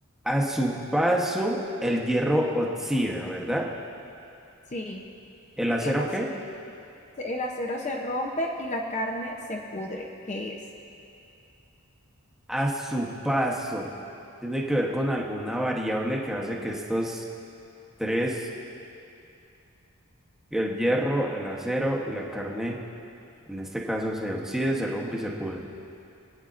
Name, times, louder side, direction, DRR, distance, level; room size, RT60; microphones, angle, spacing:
voice 1, 0.2-3.7 5.6-6.3 12.5-13.9 14.4-17.2 18.0-18.5 20.5-22.8 23.5-25.6, equal, ahead, -2 dB, 1.0 m, -27 dB
voice 2, 4.7-5.0 5.8-6.1 7.2-10.6, left 1 dB, 30° left, 0 dB, 0.6 m, -31 dB
24.5 x 8.9 x 2.5 m, 2.7 s
head